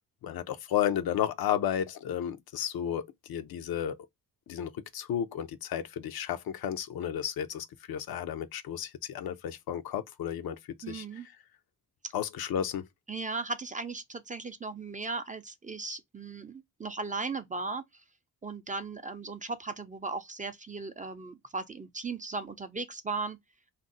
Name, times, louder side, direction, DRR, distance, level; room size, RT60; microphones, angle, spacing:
voice 1, 0.2-4.0 4.5-10.6 10.9-11.0 12.1-12.9, left 10 dB, 70° left, 0.6 m, -32 dB
voice 2, 10.8-11.3 13.1-17.8 18.4-23.4, right 3 dB, 20° right, 0.4 m, -37 dB
2.5 x 2.0 x 3.7 m
cardioid pair, 85°, 38 cm